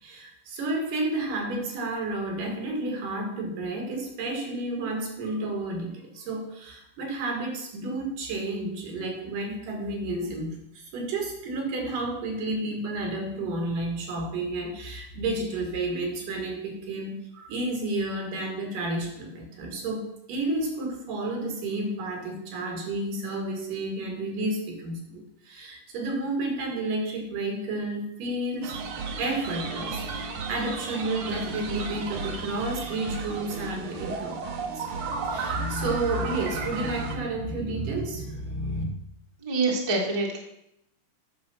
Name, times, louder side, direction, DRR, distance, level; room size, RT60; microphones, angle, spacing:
voice 1, 0.0-28.8 29.2-34.9 35.3-38.8, right 2 dB, 90° right, 1 dB, 3.8 m, -31 dB
sound 1, 28.6-37.2, right 4 dB, 65° right, 1.4 m, -34 dB
voice 2, 39.4-40.4, right 3 dB, 15° right, -1 dB, 0.9 m, -26 dB
9.4 x 6.7 x 5.8 m, 0.80 s
omnidirectional pair, 3.7 m